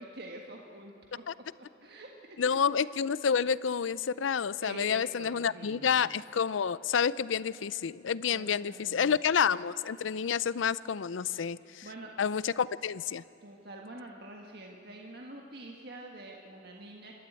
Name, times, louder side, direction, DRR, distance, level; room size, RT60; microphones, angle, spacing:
voice 1, 0.0-1.3 1.6-2.6 4.6-6.1 8.3-9.1 11.1-12.1 13.4-17.1, right 2 dB, 55° right, 0 dB, 1.6 m, -47 dB
voice 2, 2.4-11.9 12.2-13.2, left 7 dB, 90° left, 18 dB, 0.5 m, -29 dB
26.0 x 12.5 x 9.0 m, 2.7 s
head